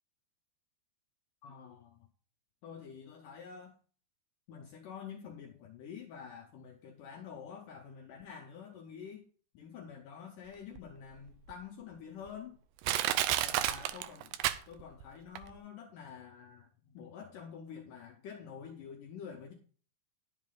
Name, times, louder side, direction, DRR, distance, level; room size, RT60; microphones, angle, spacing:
voice 1, 1.4-2.1 2.6-3.7 4.5-9.2 9.5-12.6 13.4-14.3 14.7-19.5, left 7 dB, 75° left, 2.0 m, -48 dB
Crushing, 10.8-10.9 11.5-11.6 12.3-12.4 12.8-15.0 15.4-15.5, right 13 dB, 85° right, 2.7 m, -31 dB
11.0 x 7.5 x 3.8 m
omnidirectional pair, 4.8 m